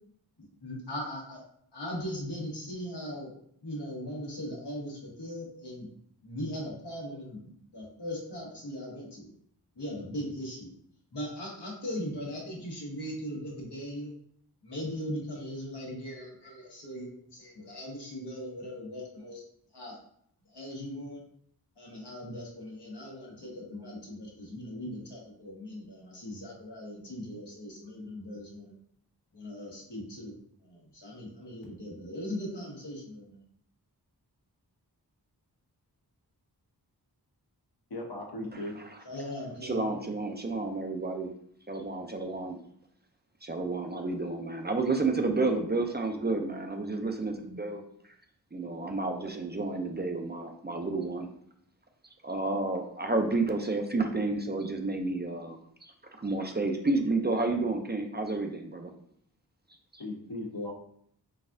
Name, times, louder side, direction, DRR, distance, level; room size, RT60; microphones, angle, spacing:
voice 1, 0.6-1.4 1.7-3.3 3.6-5.9 6.2-7.4 7.7-9.3 9.8-10.7 11.1-14.1 14.6-19.4 19.7-20.0 20.5-21.2 21.8-28.7 29.3-30.3 30.6-33.4 39.0-39.9, equal, 90° left, -4 dB, 1.3 m, -39 dB
voice 2, 37.9-38.7 60.0-60.7, left 1 dB, 65° left, 0 dB, 0.9 m, -37 dB
voice 3, 39.6-41.3 41.7-42.6 43.4-47.8 48.5-51.3 52.2-55.9 56.2-58.9 59.9-60.0, right 3 dB, 25° right, 4 dB, 0.4 m, -31 dB
3.9 x 3.5 x 2.6 m, 0.67 s
wide cardioid pair, 60°, 40 cm